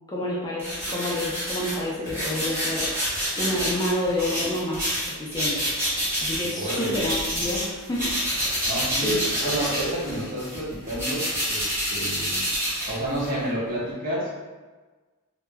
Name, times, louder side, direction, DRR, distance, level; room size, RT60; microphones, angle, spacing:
voice 1, 0.1-2.9 3.4-5.7 6.2-8.4 9.0-9.2, left 1 dB, 15° left, -6 dB, 0.4 m, -29 dB
sound 1, 0.6-7.7 7.9-13.4, equal, 10° right, 0.9 m, -28 dB
voice 2, 6.4-7.0 8.7-12.5 12.9-14.3, right 1 dB, 40° right, -7 dB, 0.8 m, -30 dB
2.1 x 2.0 x 3.3 m, 1.3 s
head